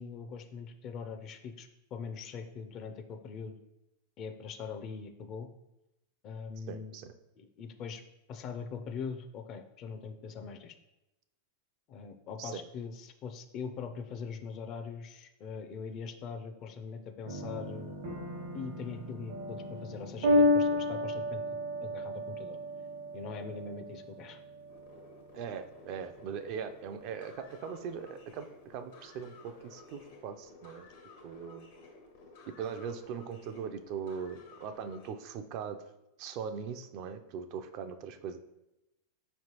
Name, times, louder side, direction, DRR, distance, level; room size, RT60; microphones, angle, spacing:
voice 1, 0.0-3.6 4.2-5.5 6.2-7.0 7.4-8.0 8.3-10.8 11.9-18.0 18.5-21.4 21.8-22.6 23.1-24.4, left 5 dB, 45° left, 7 dB, 0.5 m, -42 dB
voice 2, 6.7-7.1 12.4-12.6 25.3-30.9 31.2-31.7 32.6-35.8 36.2-38.4, right 7 dB, 50° right, 8 dB, 0.4 m, -40 dB
sound 1, 17.2-26.3, left 1 dB, 75° right, 0.9 m, -32 dB
sound 2, 24.7-35.1, left 3 dB, 70° left, 0.9 m, -54 dB
4.7 x 3.1 x 2.9 m, 0.92 s
hypercardioid pair, 110°, 0 cm